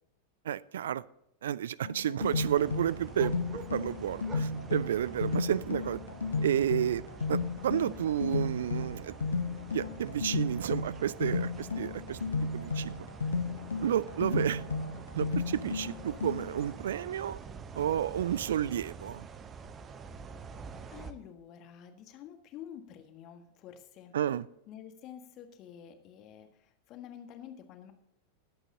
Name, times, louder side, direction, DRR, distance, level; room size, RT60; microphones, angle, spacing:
voice 1, 0.4-1.0 1.4-6.0 6.4-7.0 7.3-9.2 9.7-13.0 13.8-14.6 15.1-17.4 17.7-19.3 24.1-24.5, right 10 dB, 60° right, 21 dB, 0.3 m, -31 dB
sound 1, 1.8-16.7, left 4 dB, 70° left, 0.6 m, -34 dB
sound 2, 2.2-21.1, right 5 dB, 25° right, 0.8 m, -47 dB
voice 2, 20.9-24.1 24.7-27.9, left 9 dB, 35° left, 6 dB, 1.5 m, -49 dB
19.5 x 8.0 x 2.8 m, 0.81 s
figure-of-eight pair, 90°, 0 cm